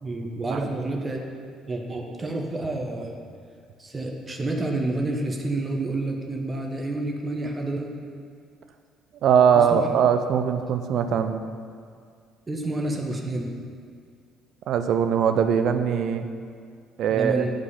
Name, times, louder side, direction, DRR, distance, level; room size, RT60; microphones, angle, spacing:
voice 1, 0.0-1.2 1.7-3.2 3.8-7.9 9.5-9.9 12.5-13.5 17.1-17.5, right 2 dB, 25° right, 1 dB, 1.2 m, -29 dB
voice 2, 9.2-11.4 14.7-16.3 17.0-17.4, right 7 dB, 55° right, 8 dB, 0.5 m, -21 dB
7.8 x 4.8 x 7.0 m, 2.1 s
figure-of-eight pair, 50°, 0 cm